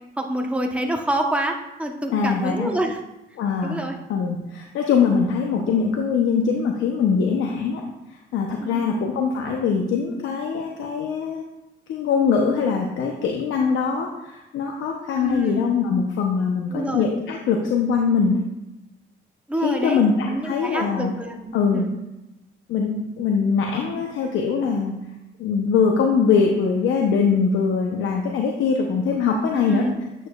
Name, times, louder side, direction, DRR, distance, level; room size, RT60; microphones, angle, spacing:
voice 1, 0.2-3.0 3.6-4.0 8.6-9.0 15.2-15.7 16.7-17.1 19.5-22.0 29.5-30.0, right 1 dB, 5° right, 2 dB, 1.0 m, -27 dB
voice 2, 2.1-2.7 3.4-7.8 8.3-11.4 11.9-18.4 19.6-21.1 21.5-21.8 22.7-24.9 25.4-29.9, left 5 dB, 80° left, 1 dB, 0.8 m, -22 dB
8.5 x 6.8 x 2.4 m, 0.96 s
cardioid pair, 90°, 20 cm